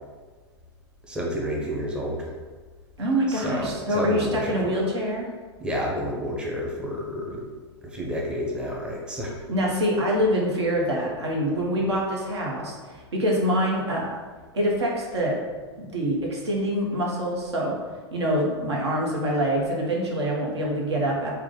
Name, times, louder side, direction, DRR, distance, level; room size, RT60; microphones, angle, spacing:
voice 1, 1.0-2.3 3.3-4.8 5.6-7.5 7.8-9.3, equal, 5° right, -3 dB, 0.6 m, -30 dB
voice 2, 3.0-5.3 9.5-14.1 14.5-15.4 15.9-17.7 18.1-21.3, equal, 75° right, -2 dB, 0.9 m, -25 dB
3.5 x 2.1 x 3.8 m, 1.4 s
figure-of-eight pair, 95°, 14 cm